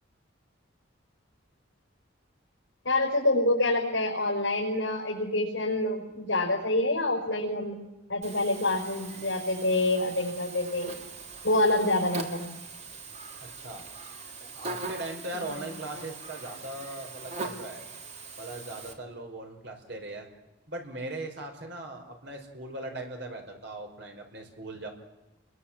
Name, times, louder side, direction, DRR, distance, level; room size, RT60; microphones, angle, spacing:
voice 1, 2.8-7.8 8.1-11.0 11.4-12.5 15.3-15.4, left 2 dB, 70° left, -3 dB, 5.5 m, -27 dB
Buzz, 8.2-18.9, right 3 dB, 35° right, 2.9 m, -41 dB
voice 2, 13.4-13.8 14.4-17.9 18.4-20.3 20.7-24.9, right 1 dB, 60° right, 3 dB, 5.2 m, -39 dB
30.0 x 22.5 x 7.6 m, 1.0 s
head